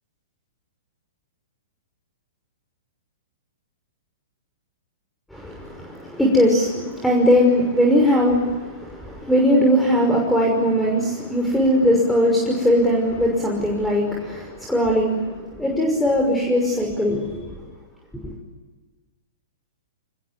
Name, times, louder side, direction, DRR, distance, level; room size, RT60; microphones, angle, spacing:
voice 1, 5.3-17.6 18.2-18.3, equal, 5° left, 0 dB, 5.8 m, -20 dB
27.0 x 21.0 x 9.8 m, 1.3 s
figure-of-eight pair, 115°, 0 cm